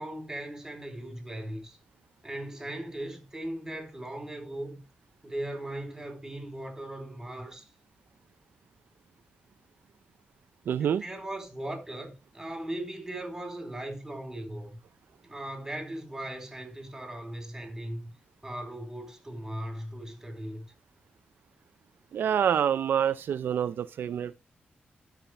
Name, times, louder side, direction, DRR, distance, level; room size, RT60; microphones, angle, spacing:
voice 1, 0.0-1.8 2.2-4.8 5.2-7.6 10.8-14.8 15.2-18.1 18.4-20.7, right 1 dB, 10° right, 4.1 m, -38 dB
voice 2, 10.7-11.0 22.1-24.3, right 8 dB, 80° right, 0.5 m, -27 dB
12.0 x 5.7 x 3.3 m
cardioid pair, 90°, 4 cm